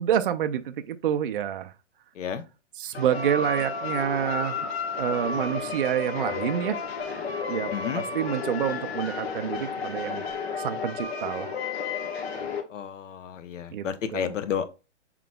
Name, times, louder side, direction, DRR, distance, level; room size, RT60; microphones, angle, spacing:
voice 1, 0.0-1.7 2.8-4.6 5.0-6.8 7.5-10.2 10.6-11.5 13.7-13.8 14.1-14.3, right 9 dB, 50° right, 0.4 m, -28 dB
sound 1, 2.9-12.6, left 5 dB, 55° left, 1.2 m, -32 dB
voice 2, 7.7-8.0 12.7-14.7, left 8 dB, 85° left, 0.9 m, -31 dB
5.9 x 3.8 x 2.2 m
hypercardioid pair, 165°, 36 cm